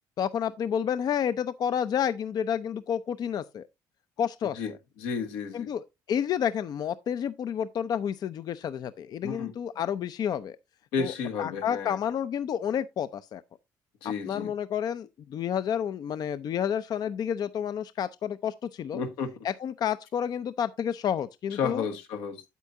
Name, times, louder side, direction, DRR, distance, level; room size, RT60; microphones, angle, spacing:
voice 1, 0.2-3.7 4.2-4.6 5.5-10.6 11.0-11.1 11.4-13.4 14.3-19.0 19.4-21.9, left 8 dB, 55° left, 0.5 m, -30 dB
voice 2, 5.0-5.7 9.2-9.5 10.9-12.0 14.0-14.5 18.9-19.3 21.5-22.4, left 5 dB, 85° left, 1.2 m, -32 dB
8.3 x 8.2 x 2.6 m
supercardioid pair, 80°, 8 cm